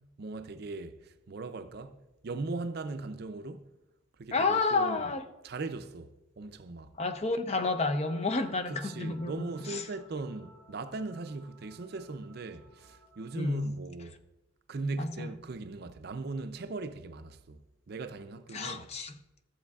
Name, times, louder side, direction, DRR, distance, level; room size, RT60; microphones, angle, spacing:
voice 1, 0.2-3.7 4.2-5.1 5.4-6.9 8.7-14.2 14.7-18.9, right 3 dB, 50° right, 0.5 m, -39 dB
voice 2, 4.3-5.2 7.0-9.8 13.4-13.7 15.0-15.3 18.5-19.1, left 3 dB, 30° left, 0.5 m, -30 dB
sound 1, 7.5-13.4, right 1 dB, 10° left, 1.6 m, -57 dB
14.0 x 7.4 x 2.4 m
head